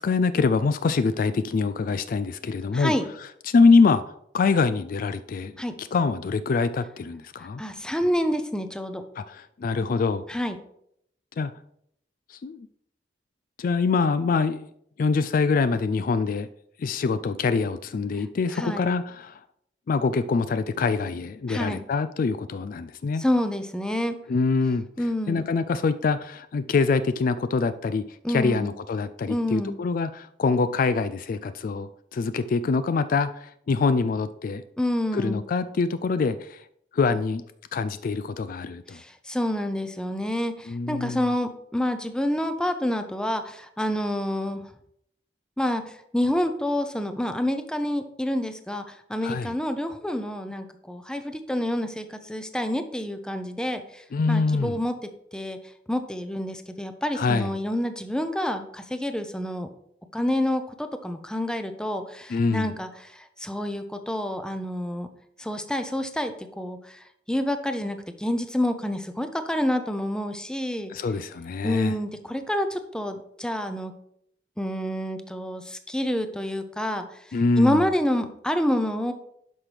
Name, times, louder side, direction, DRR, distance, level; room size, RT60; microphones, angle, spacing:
voice 1, 0.0-2.9 3.4-4.0 4.3-7.6 9.2-10.2 11.4-11.5 12.4-12.7 13.6-14.7 15.0-16.5 16.8-19.4 19.9-23.3 24.3-24.9 25.3-34.6 35.1-36.6 36.9-37.4 37.7-39.0 40.7-41.2 49.2-49.5 54.1-54.8 57.2-57.5 62.3-62.8 70.9-71.9 77.3-77.8, left 4 dB, 50° left, 12 dB, 0.3 m, -24 dB
voice 2, 2.7-3.1 5.6-5.7 7.6-9.0 10.3-10.6 18.5-18.9 21.5-21.8 23.2-24.2 25.0-25.5 28.2-28.7 29.3-29.8 34.8-35.4 38.9-44.6 45.6-45.8 46.1-48.8 49.1-54.0 54.3-54.9 55.3-55.6 55.9-59.7 60.1-65.1 65.4-66.3 66.6-67.0 67.3-70.9 71.6-73.9 74.6-77.0 77.6-79.1, left 1 dB, 5° left, 8 dB, 0.6 m, -28 dB
10.5 x 5.8 x 3.4 m, 0.72 s
head